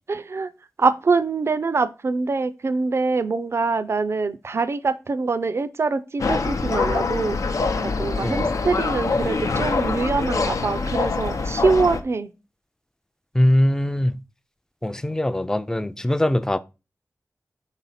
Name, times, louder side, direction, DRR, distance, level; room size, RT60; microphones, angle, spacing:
voice 1, 0.1-0.5 0.8-7.4 7.8-12.3, right 4 dB, 55° right, 0.4 m, -24 dB
sound 1, 6.2-12.0, left 4 dB, 80° left, 0.7 m, -24 dB
voice 2, 13.3-14.2 14.8-16.6, left 1 dB, 10° left, 0.4 m, -21 dB
4.6 x 4.1 x 5.6 m
wide cardioid pair, 100°, 5 cm